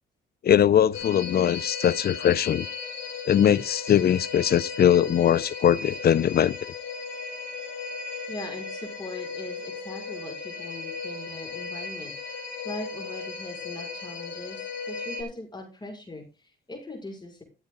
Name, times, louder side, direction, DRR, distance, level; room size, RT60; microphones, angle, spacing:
voice 1, 0.4-2.7 3.3-6.6, left 10 dB, 50° left, 0.7 m, -21 dB
sound 1, 0.9-15.2, left 4 dB, 70° left, 4.2 m, -36 dB
voice 2, 8.3-17.4, left 2 dB, 20° left, 5.7 m, -40 dB
13.5 x 8.1 x 4.0 m
cardioid pair, 90°, 20 cm